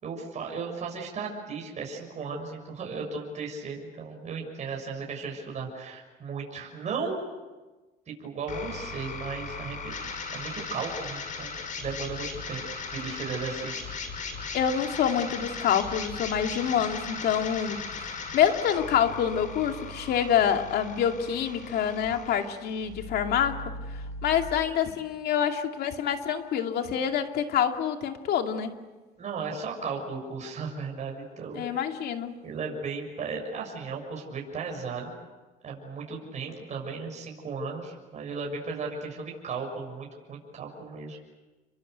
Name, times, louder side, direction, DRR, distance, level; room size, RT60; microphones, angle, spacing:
voice 1, 0.0-7.2 8.1-9.9 10.3-14.4 29.2-31.6 32.4-35.1 35.6-41.2, right 4 dB, 45° right, 0 dB, 6.8 m, -36 dB
sound 1, 8.5-24.5, left 4 dB, 50° left, 5.8 m, -38 dB
voice 2, 14.5-28.8 31.5-32.4, left 8 dB, 70° left, 5 dB, 2.5 m, -27 dB
29.5 x 23.0 x 8.1 m, 1.2 s
cardioid pair, 110°, 17 cm